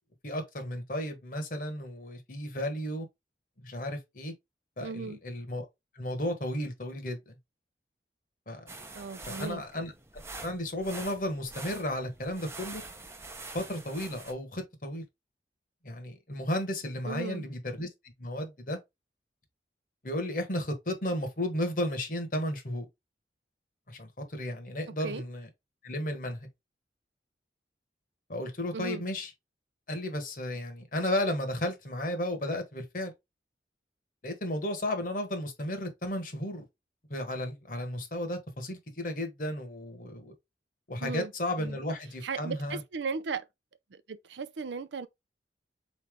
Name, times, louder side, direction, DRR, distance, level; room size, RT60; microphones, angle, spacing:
voice 1, 0.2-3.1 3.6-4.3 4.8-5.6 5.9-7.4 8.5-8.8 9.3-12.8 13.5-15.0 15.8-17.9 18.2-18.8 20.0-22.9 23.9-25.5 25.8-26.5 28.3-29.3 29.9-33.1 34.2-36.6 37.1-40.3 40.9-42.8, left 1 dB, 50° left, 1.2 m, -34 dB
voice 2, 4.8-5.2 8.9-9.6 17.0-17.5 25.0-25.2 28.7-29.0 41.0-41.3 41.6-41.8 42.2-43.5 43.9-45.1, right 4 dB, 85° right, 0.5 m, -36 dB
sound 1, 8.7-14.3, right 3 dB, 15° right, 0.6 m, -45 dB
4.1 x 3.2 x 3.6 m
head